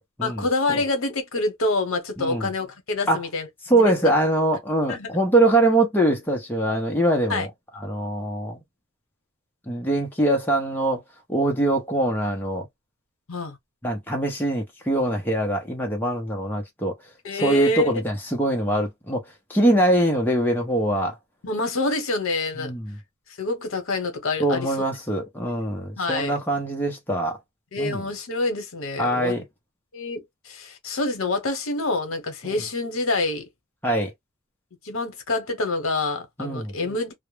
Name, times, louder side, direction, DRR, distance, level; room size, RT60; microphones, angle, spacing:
voice 1, 0.2-4.1 4.9-5.3 7.3-7.5 13.3-13.6 17.2-18.0 21.4-22.7 23.4-24.7 26.0-26.3 27.7-29.4 29.9-33.5 34.8-37.1, left 2 dB, 70° left, 0.8 m, -27 dB
voice 2, 2.2-2.5 3.1-3.2 3.7-7.5 7.8-8.6 9.7-11.0 11.3-12.7 13.8-16.9 17.3-19.2 19.5-21.1 22.6-22.9 24.4-27.4 27.8-28.0 29.0-29.4 33.8-34.1 36.4-36.7, right 1 dB, 10° left, 0.5 m, -23 dB
2.1 x 2.0 x 3.1 m
head